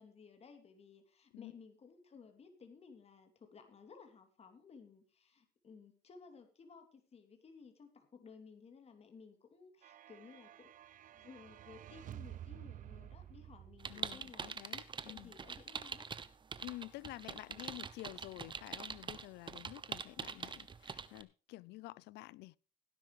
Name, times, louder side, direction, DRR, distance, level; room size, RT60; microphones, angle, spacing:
voice 1, 0.0-10.7 11.1-14.5 15.0-16.1 17.5-17.7 20.1-20.5, left 5 dB, 35° left, 3.1 m, -57 dB
sound 1, 9.8-14.5, right 11 dB, 50° right, 0.5 m, -51 dB
sound 2, 13.8-21.2, right 5 dB, 30° right, 1.1 m, -44 dB
voice 2, 13.9-15.3 16.6-22.6, left 19 dB, 85° left, 0.5 m, -50 dB
17.5 x 10.0 x 3.2 m
cardioid pair, 110°, 17 cm